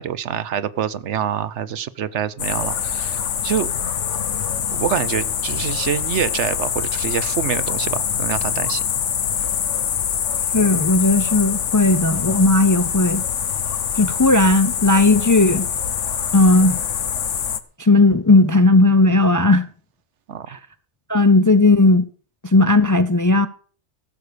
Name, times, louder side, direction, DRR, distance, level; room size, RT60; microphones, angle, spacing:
voice 1, 0.0-3.7 4.7-8.8 20.3-20.6, right 9 dB, 75° right, 1.1 m, -26 dB
sound 1, 2.4-17.6, left 8 dB, 90° left, 1.3 m, -24 dB
voice 2, 10.5-13.2 13.9-15.7 16.3-16.8 17.8-19.7 20.5-20.6 21.1-22.1 22.4-23.5, left 2 dB, 25° left, 0.4 m, -15 dB
15.5 x 6.5 x 6.7 m
omnidirectional pair, 1.2 m